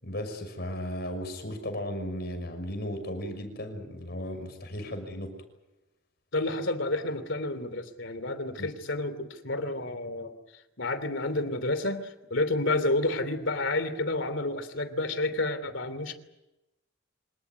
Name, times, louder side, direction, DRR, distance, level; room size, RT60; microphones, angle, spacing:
voice 1, 0.0-5.3 8.6-8.7, equal, 50° left, 6 dB, 6.1 m, -35 dB
voice 2, 6.3-10.3 10.8-16.1, left 2 dB, 65° left, 12 dB, 3.0 m, -30 dB
26.5 x 18.5 x 9.3 m, 0.96 s
head